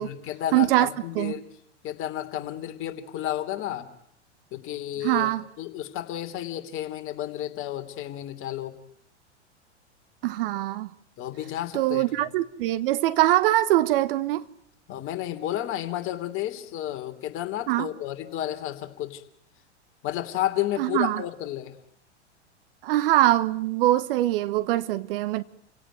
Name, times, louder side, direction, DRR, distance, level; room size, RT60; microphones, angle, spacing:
voice 1, 0.0-1.4 1.8-3.9 4.5-8.7 11.2-12.2 14.9-19.2 20.0-21.7, left 12 dB, 35° left, 3.1 m, -32 dB
voice 2, 0.5-0.9 1.1-1.3 5.0-5.4 10.2-10.9 11.7-14.4 17.7-17.9 20.8-21.2 22.8-25.4, right 15 dB, 50° right, 1.2 m, -23 dB
29.5 x 17.5 x 9.3 m
figure-of-eight pair, 95°, 35 cm